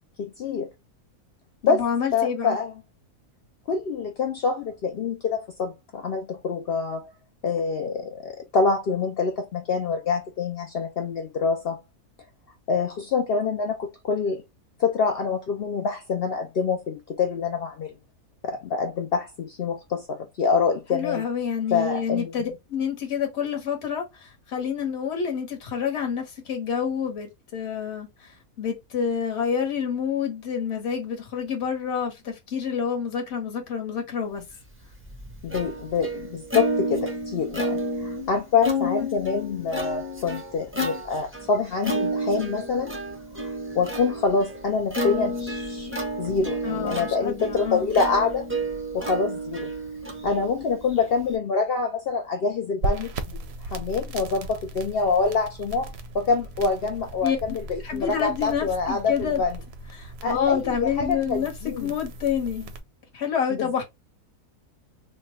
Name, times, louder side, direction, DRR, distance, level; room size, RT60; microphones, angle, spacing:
voice 1, 0.2-0.7 1.6-1.8 2.1-2.7 3.7-7.1 7.4-11.8 12.7-14.4 14.8-17.9 18.4-21.2 21.7-22.3 35.4-42.9 43.4-43.5 43.7-48.4 48.9-49.7 50.2-53.4 53.7-59.6 60.2-61.9 63.6-63.8, left 5 dB, 80° left, 0.5 m, -26 dB
voice 2, 1.7-2.6 20.9-34.4 46.6-47.9 57.2-57.4 57.8-59.4 60.0-62.7 63.1-63.8, left 7 dB, 45° left, 1.4 m, -28 dB
Plucked string instrument, 34.6-51.4, equal, 20° right, 0.4 m, -31 dB
sound 1, 52.8-62.8, right 2 dB, 60° right, 0.7 m, -37 dB
3.3 x 2.2 x 4.2 m
omnidirectional pair, 1.6 m